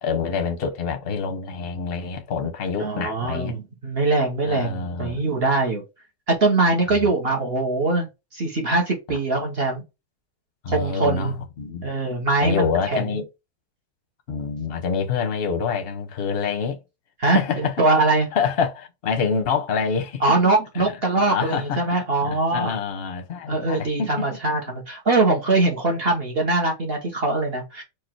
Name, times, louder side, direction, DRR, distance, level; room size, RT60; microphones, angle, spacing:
voice 1, 0.0-3.6 4.5-5.2 6.9-7.1 9.1-9.2 10.6-11.9 12.4-13.3 14.3-16.8 17.2-17.9 18.3-20.4 20.7-24.3, left 5 dB, 45° left, 0.8 m, -27 dB
voice 2, 2.8-5.8 6.3-8.1 8.3-9.8 10.7-11.3 11.8-13.2 17.2-18.3 20.2-22.7 23.5-27.8, right 2 dB, 40° right, 1.0 m, -22 dB
4.8 x 2.4 x 4.5 m
omnidirectional pair, 1.9 m